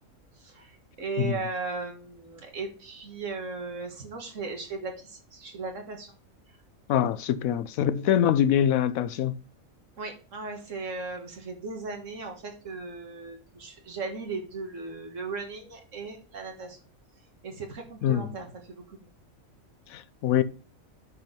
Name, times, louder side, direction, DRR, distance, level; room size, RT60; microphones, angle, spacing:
voice 1, 0.4-6.1 10.0-16.8 17.4-19.0, right 4 dB, 65° right, 1.8 m, -37 dB
voice 2, 6.9-9.4 18.0-18.4 19.9-20.4, left 10 dB, 90° left, 1.1 m, -24 dB
8.5 x 4.5 x 5.1 m
omnidirectional pair, 1.4 m